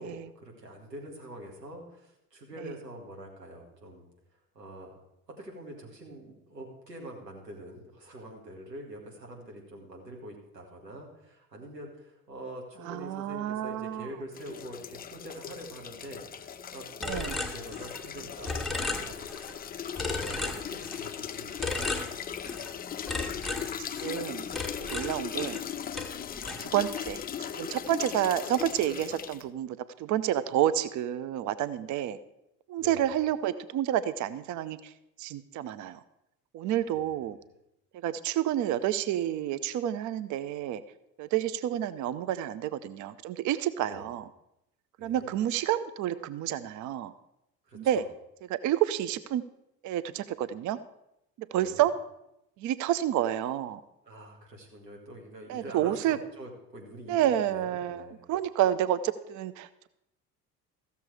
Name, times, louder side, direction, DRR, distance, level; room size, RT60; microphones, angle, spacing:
voice 1, 0.0-4.1 4.6-5.0 5.4-22.0 32.8-33.1 36.9-37.1 43.9-44.1 45.0-45.3 47.7-48.0 51.6-51.9 54.1-58.3, right 1 dB, 85° right, -1 dB, 2.1 m, -45 dB
voice 2, 12.9-14.1 17.0-17.3 24.0-24.5 24.8-25.6 26.6-27.2 27.5-32.2 32.7-34.8 35.2-36.0 36.5-37.4 37.9-40.8 41.2-44.2 45.0-47.1 47.7-48.0 48.5-49.4 49.8-50.8 51.5-51.9 52.6-53.8 55.5-56.2 57.1-59.9, right 11 dB, 40° right, 15 dB, 0.6 m, -29 dB
sound 1, 14.3-29.4, left 8 dB, 20° left, 0.5 m, -38 dB
sound 2, 17.0-18.2 18.4-19.6 19.9-21.1 21.6-22.7 23.1-25.7 25.9-27.1, left 2 dB, ahead, 1.6 m, -35 dB
15.0 x 6.9 x 4.8 m, 0.84 s
figure-of-eight pair, 55°, 48 cm